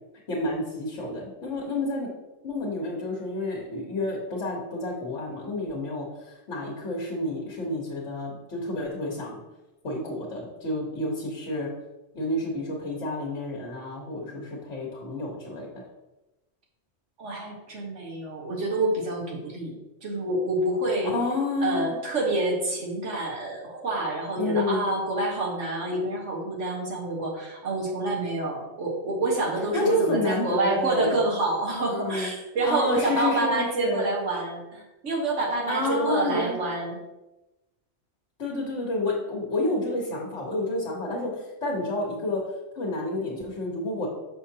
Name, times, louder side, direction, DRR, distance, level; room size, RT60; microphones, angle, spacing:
voice 1, 0.3-2.1 2.4-9.4 9.8-11.7 12.1-15.8 21.0-22.0 24.4-24.8 29.7-31.2 31.9-32.3 32.6-34.0 35.7-36.6 38.4-42.5 42.7-44.1, left 2 dB, 70° left, -3 dB, 1.5 m, -29 dB
voice 2, 17.2-19.7 20.0-21.1 21.6-37.0, right 2 dB, 80° right, -1 dB, 1.6 m, -27 dB
6.5 x 5.6 x 2.8 m, 1.0 s
omnidirectional pair, 1.2 m